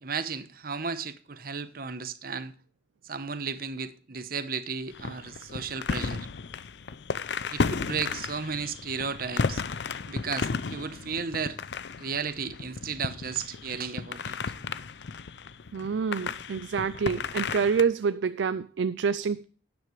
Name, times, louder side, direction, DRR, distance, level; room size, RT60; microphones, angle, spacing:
voice 1, 0.0-2.5 3.1-6.3 7.5-9.6 10.1-11.6 12.0-14.4, right 5 dB, 50° right, 0.9 m, -34 dB
sound 1, 4.9-17.8, left 5 dB, 65° left, 0.5 m, -34 dB
voice 2, 15.7-19.4, right 6 dB, 75° right, 0.4 m, -27 dB
12.0 x 9.3 x 3.1 m
head